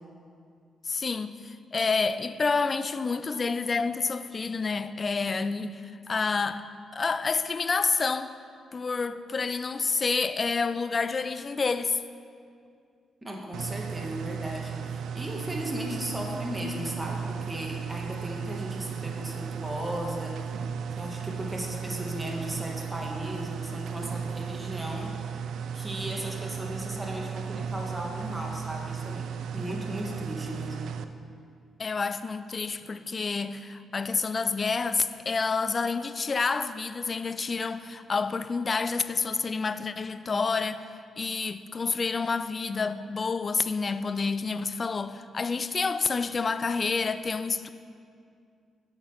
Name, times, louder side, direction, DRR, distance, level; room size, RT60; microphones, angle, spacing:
voice 1, 0.8-6.7 6.9-8.3 8.7-12.0 31.8-40.8 41.2-47.7, left 4 dB, 40° left, 0.3 m, -28 dB
voice 2, 13.2-20.5 21.0-25.1 25.7-30.9, equal, 15° right, 1.3 m, -36 dB
sound 1, 13.5-31.0, right 7 dB, 80° right, 0.3 m, -35 dB
8.2 x 4.4 x 5.6 m
cardioid pair, 80°, 0 cm